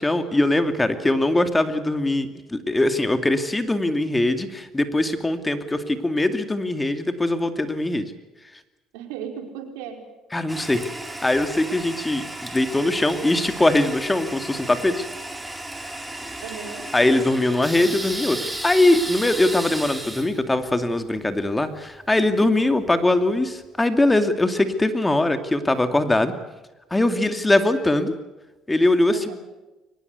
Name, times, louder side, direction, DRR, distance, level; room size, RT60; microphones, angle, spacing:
voice 1, 0.0-8.0 10.3-10.9 11.2-15.0 16.9-18.4 18.6-26.3 26.9-28.1 28.7-29.3, left 2 dB, 15° left, 9 dB, 2.5 m, -21 dB
voice 2, 8.9-10.0 16.4-16.8 29.1-29.3, right 7 dB, 90° right, 4 dB, 4.6 m, -35 dB
Toilet flush, 10.5-23.1, right 1 dB, 10° right, 4.3 m, -35 dB
23.5 x 20.0 x 8.2 m, 1.1 s
supercardioid pair, 85°, 0 cm